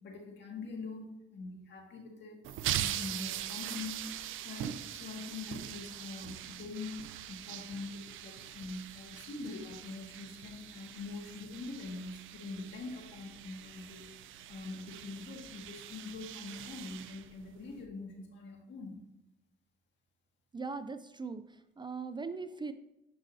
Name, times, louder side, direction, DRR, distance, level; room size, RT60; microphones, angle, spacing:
voice 1, 0.0-2.4 2.8-4.2 4.4-14.1 14.5-19.0, left 3 dB, 65° left, 1 dB, 1.9 m, -44 dB
sound 1, 2.4-17.8, right 11 dB, 80° right, 0.5 m, -42 dB
voice 2, 20.5-22.7, right 4 dB, 25° right, 11 dB, 0.4 m, -40 dB
11.5 x 5.1 x 2.7 m, 0.88 s
cardioid pair, 90°, 20 cm